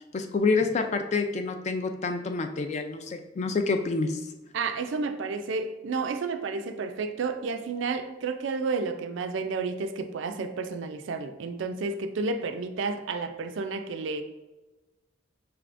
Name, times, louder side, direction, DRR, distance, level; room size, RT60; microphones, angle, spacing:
voice 1, 0.1-4.2, left 4 dB, 35° left, 6 dB, 0.3 m, -27 dB
voice 2, 4.5-14.2, right 4 dB, 65° right, 8 dB, 0.4 m, -31 dB
5.7 x 3.4 x 2.5 m, 1.1 s
head